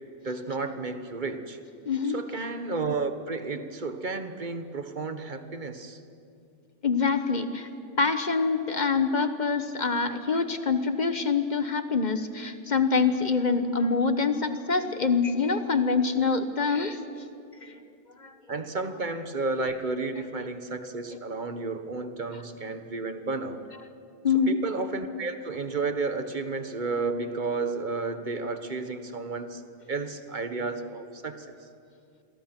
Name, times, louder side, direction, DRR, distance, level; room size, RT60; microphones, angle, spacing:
voice 1, 0.2-1.6 2.0-6.0 9.6-9.7 18.5-23.6 24.5-29.6 29.9-31.5, right 3 dB, 35° right, 9 dB, 1.3 m, -32 dB
voice 2, 1.9-2.2 6.8-7.7 8.0-17.0 17.6-17.8 18.2-18.3 24.2-24.6, left 4 dB, 35° left, 9 dB, 1.2 m, -25 dB
28.5 x 22.5 x 6.0 m, 2.4 s
omnidirectional pair, 1.5 m